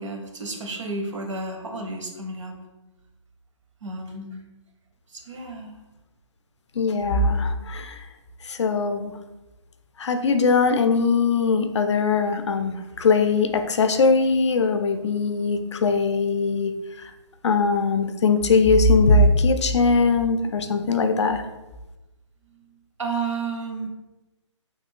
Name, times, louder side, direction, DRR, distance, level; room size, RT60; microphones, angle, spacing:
voice 1, 0.0-2.6 3.8-4.4 5.1-5.7 22.5-23.9, right 3 dB, 75° right, 3 dB, 0.7 m, -32 dB
voice 2, 6.8-8.0 8.4-9.1 10.0-16.7 17.4-21.4, left 4 dB, 65° left, 7 dB, 0.4 m, -20 dB
3.1 x 2.4 x 3.6 m, 1.1 s
hypercardioid pair, 170°, 16 cm